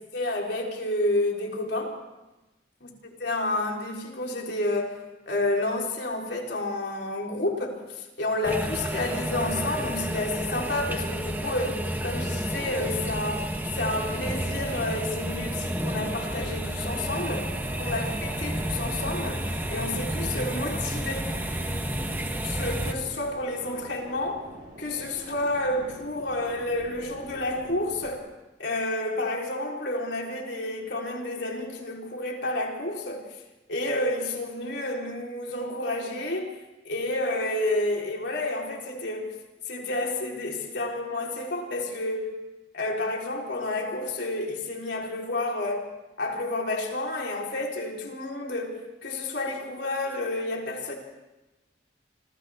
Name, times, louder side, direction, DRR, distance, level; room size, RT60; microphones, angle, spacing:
voice 1, 0.1-2.0 3.2-5.0 5.3-7.8 8.2-13.5 13.7-17.5 17.8-19.4 19.7-21.3 22.6-24.4 24.8-28.3 28.6-33.3 33.7-36.5 36.9-39.3 39.7-42.3 42.7-45.9 46.2-50.9, left 2 dB, 75° left, -1 dB, 3.9 m, -30 dB
sound 1, 8.4-22.9, right 1 dB, 10° right, 1.3 m, -31 dB
sound 2, 14.3-28.1, right 1 dB, 45° right, 6.6 m, -44 dB
28.5 x 25.5 x 3.6 m, 1.1 s
head